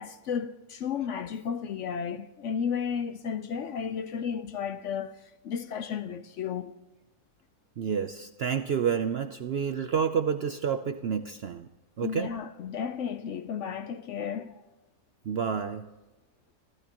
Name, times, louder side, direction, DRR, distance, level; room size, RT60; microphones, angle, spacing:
voice 1, 0.0-5.2 5.4-6.7 12.0-14.6, left 7 dB, 65° left, 0.8 m, -33 dB
voice 2, 7.8-11.7 12.0-12.3 15.3-15.9, right 7 dB, 65° right, 0.6 m, -29 dB
27.5 x 14.5 x 2.9 m
omnidirectional pair, 1.6 m